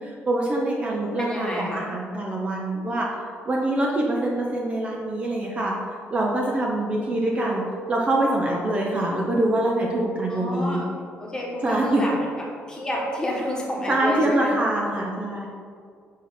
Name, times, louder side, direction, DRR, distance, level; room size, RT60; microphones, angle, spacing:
voice 1, 0.0-3.1 3.5-5.7 6.1-7.6 7.9-10.8 11.6-12.2 13.9-15.5, right 1 dB, 25° right, -2 dB, 0.6 m, -24 dB
voice 2, 1.2-1.9 10.3-10.9 11.2-12.3 12.7-14.5, left 1 dB, 15° left, -3 dB, 1.3 m, -29 dB
7.2 x 2.9 x 5.8 m, 2.2 s
cardioid pair, 150°, 5 cm